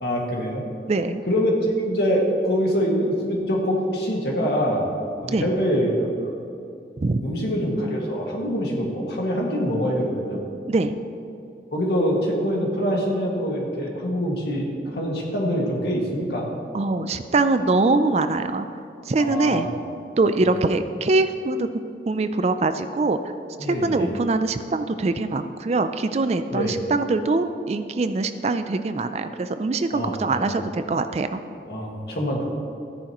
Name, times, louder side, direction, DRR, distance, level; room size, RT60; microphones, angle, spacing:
voice 1, 0.0-0.6 1.3-6.1 7.2-10.4 11.7-16.5 19.2-19.6 20.4-20.6 23.6-24.1 26.5-26.7 29.9-30.6 31.7-32.4, equal, 65° left, -2 dB, 1.9 m, -24 dB
voice 2, 0.9-1.2 5.3-5.5 7.0-7.2 10.7-10.9 16.7-18.7 19.1-19.7 20.2-21.7 22.1-23.3 23.7-31.4, right 3 dB, 35° right, 10 dB, 0.3 m, -23 dB
13.5 x 9.9 x 3.0 m, 2.6 s
head